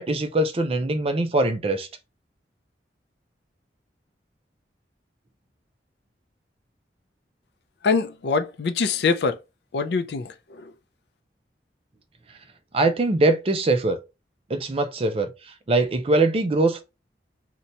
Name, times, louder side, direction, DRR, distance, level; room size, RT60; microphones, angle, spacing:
voice 1, 0.0-1.9 12.7-14.0 14.5-15.3 15.7-16.8, right 2 dB, 35° right, 0.4 m, -22 dB
voice 2, 7.8-9.4 9.7-10.7, left 4 dB, 65° left, 0.4 m, -24 dB
2.8 x 2.2 x 3.9 m
head